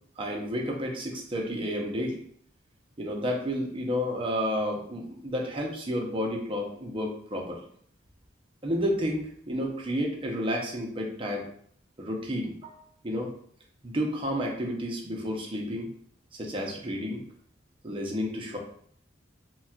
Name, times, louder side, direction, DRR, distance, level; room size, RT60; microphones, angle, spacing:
voice 1, 0.2-2.2 3.0-7.6 8.6-11.5 12.0-12.8 13.0-13.3 13.8-15.9 16.4-17.2 17.8-18.6, equal, 25° right, 0 dB, 0.6 m, -31 dB
4.1 x 2.2 x 2.3 m, 0.62 s
head